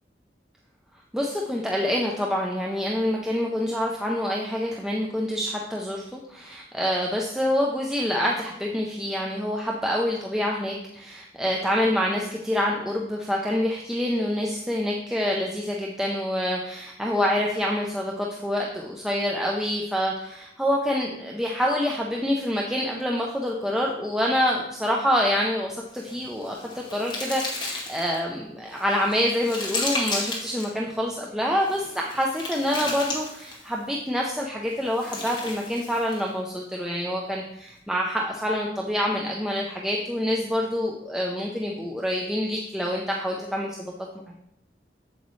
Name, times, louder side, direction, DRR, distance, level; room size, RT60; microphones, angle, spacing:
voice 1, 1.1-26.5 26.9-43.8, equal, 5° right, -2 dB, 0.5 m, -26 dB
sound 1, 25.9-28.2 28.7-30.7 31.6-33.7 34.7-36.3, left 2 dB, 25° left, 1.6 m, -34 dB
8.0 x 7.3 x 3.1 m, 0.84 s
head